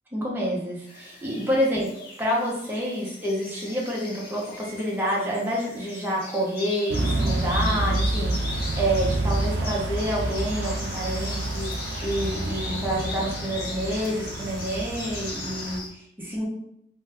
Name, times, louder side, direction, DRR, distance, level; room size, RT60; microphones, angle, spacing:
voice 1, 0.1-1.9 2.2-11.7 12.0-16.5, equal, 10° right, -4 dB, 0.7 m, -28 dB
sound 1, 0.9-15.9, left 3 dB, 55° left, 0.7 m, -39 dB
sound 2, 6.9-15.8, right 2 dB, 75° right, 0.4 m, -28 dB
2.6 x 2.3 x 3.3 m, 0.73 s
head